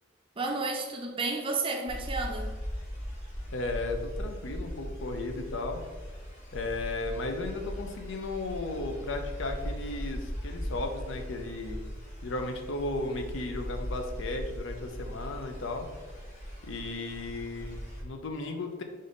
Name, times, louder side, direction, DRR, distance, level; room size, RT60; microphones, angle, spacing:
voice 1, 0.4-2.5, right 3 dB, 25° right, 3 dB, 0.5 m, -32 dB
sound 1, 1.9-18.0, equal, 35° left, 1.3 m, -39 dB
voice 2, 3.5-5.8 6.5-11.9 12.2-15.9 16.6-18.8, left 2 dB, 65° left, 5 dB, 0.6 m, -35 dB
5.1 x 2.6 x 3.9 m, 1.3 s
head